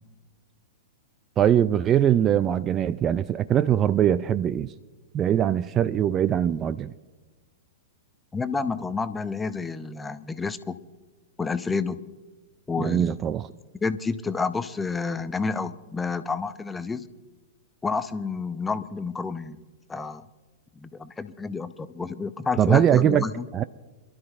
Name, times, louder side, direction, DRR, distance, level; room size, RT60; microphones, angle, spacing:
voice 1, 1.4-4.7 5.1-6.9 12.8-13.5 22.6-23.2 23.5-23.6, right 10 dB, 25° right, 16 dB, 0.3 m, -22 dB
voice 2, 8.3-10.8 11.4-12.0 12.7-13.1 13.8-17.1 17.8-19.6 19.9-20.3 20.8-23.5, left 4 dB, 10° left, 13 dB, 0.6 m, -29 dB
27.0 x 12.5 x 2.5 m, 1.2 s
figure-of-eight pair, 100°, 0 cm